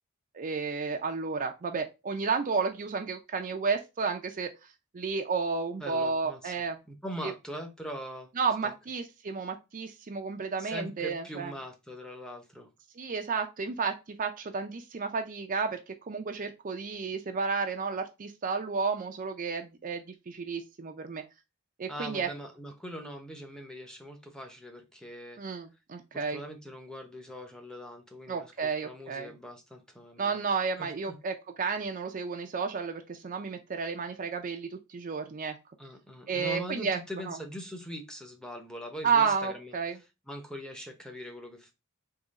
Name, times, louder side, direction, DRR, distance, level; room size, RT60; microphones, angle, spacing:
voice 1, 0.3-4.5 4.9-6.8 7.2-7.3 8.4-11.5 13.0-21.2 21.8-22.3 25.4-26.4 28.3-29.3 30.2-35.6 36.3-37.4 39.0-40.0, right 5 dB, 40° right, 5 dB, 0.4 m, -32 dB
voice 2, 5.8-8.3 8.6-8.7 10.6-12.7 21.9-25.4 26.1-30.4 30.8-31.2 35.8-39.7 40.3-41.7, equal, 5° left, 4 dB, 0.7 m, -42 dB
3.7 x 2.9 x 4.0 m, 0.25 s
head